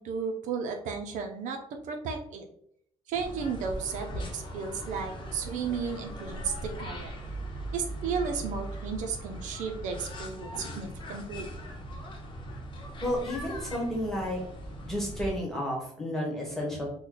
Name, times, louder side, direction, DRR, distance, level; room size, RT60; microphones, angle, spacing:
voice 1, 0.0-2.5 3.1-7.1 7.7-11.5, right 5 dB, 85° right, 4 dB, 0.5 m, -34 dB
sound 1, 3.1-15.4, right 1 dB, 40° left, 0.8 m, -39 dB
voice 2, 13.0-14.4 14.8-16.9, left 1 dB, 5° left, -4 dB, 1.2 m, -31 dB
3.1 x 2.2 x 3.8 m, 0.67 s
cardioid pair, 125°, 13 cm